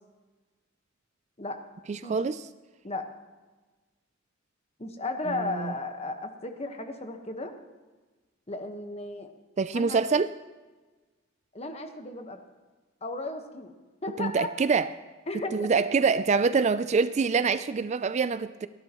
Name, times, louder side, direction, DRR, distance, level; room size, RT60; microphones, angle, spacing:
voice 1, 1.9-2.4 5.6-5.7 9.6-10.3 14.2-14.9 15.5-18.7, right 5 dB, 35° right, 14 dB, 0.3 m, -25 dB
voice 2, 4.8-7.5 8.5-9.3 9.7-10.0 11.5-12.4 13.0-13.7 14.0-14.5 15.3-15.7, left 2 dB, 30° left, 5 dB, 1.3 m, -35 dB
29.5 x 11.5 x 3.0 m, 1.3 s
head